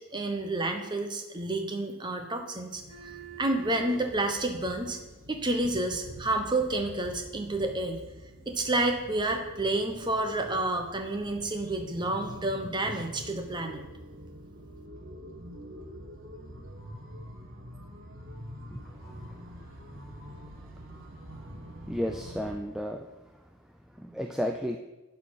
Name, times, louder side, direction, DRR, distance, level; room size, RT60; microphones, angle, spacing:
voice 1, 0.1-5.0 5.3-8.0 8.5-13.8, right 2 dB, 20° right, 5 dB, 0.9 m, -30 dB
sound 1, 2.7-22.5, right 1 dB, 60° right, 1.5 m, -46 dB
voice 2, 21.9-23.1 24.0-24.8, equal, ahead, 4 dB, 0.3 m, -32 dB
11.0 x 4.3 x 7.4 m, 1.1 s
head